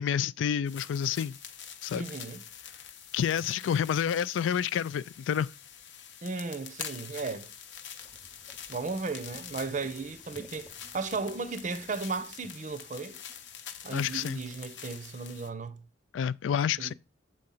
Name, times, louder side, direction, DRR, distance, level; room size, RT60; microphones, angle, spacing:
voice 1, 0.0-1.4 1.8-2.0 3.1-5.5 13.9-14.4 16.1-16.9, left 8 dB, 85° left, 0.3 m, -29 dB
sound 1, 0.7-15.5, left 8 dB, 70° left, 0.8 m, -46 dB
voice 2, 1.9-2.4 6.2-7.5 8.7-13.2 13.8-15.8 16.8-16.9, right 4 dB, 40° right, 0.6 m, -35 dB
sound 2, 8.0-13.5 14.1-14.2 14.6-14.7, equal, 5° left, 0.7 m, -57 dB
7.6 x 4.2 x 3.8 m
head